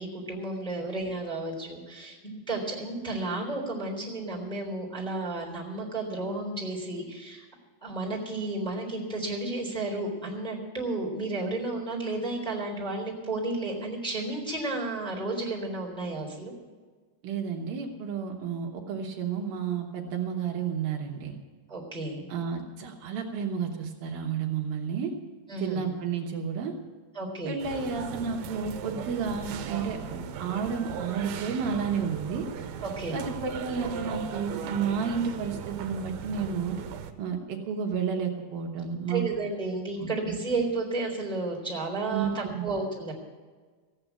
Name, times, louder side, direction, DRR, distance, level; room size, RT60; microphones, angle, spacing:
voice 1, 0.0-7.4 7.8-16.5 21.7-22.2 25.5-25.9 27.1-27.6 32.8-33.2 39.1-43.1, right 2 dB, ahead, -1 dB, 2.9 m, -32 dB
voice 2, 17.2-21.4 22.3-25.1 25.6-26.7 27.5-32.5 33.1-36.8 37.2-39.2 40.0-40.4 42.1-42.7, right 6 dB, 70° right, 1 dB, 3.0 m, -31 dB
sound 1, 27.6-37.1, right 7 dB, 90° right, 2.9 m, -38 dB
16.0 x 8.8 x 8.3 m, 1.5 s
omnidirectional pair, 4.5 m